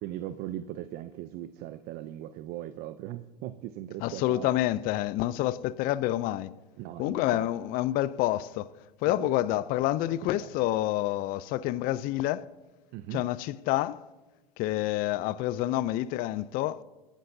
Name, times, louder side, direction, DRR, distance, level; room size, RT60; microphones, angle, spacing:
voice 1, 0.0-4.5 6.8-7.5 9.1-9.3 10.1-10.5 12.9-13.2, right 13 dB, 50° right, 0.5 m, -39 dB
voice 2, 4.0-6.5 7.0-8.7 9.0-12.5 13.1-14.0 14.6-16.8, left 15 dB, 45° left, 0.4 m, -28 dB
18.5 x 10.0 x 2.6 m
hypercardioid pair, 100°, 21 cm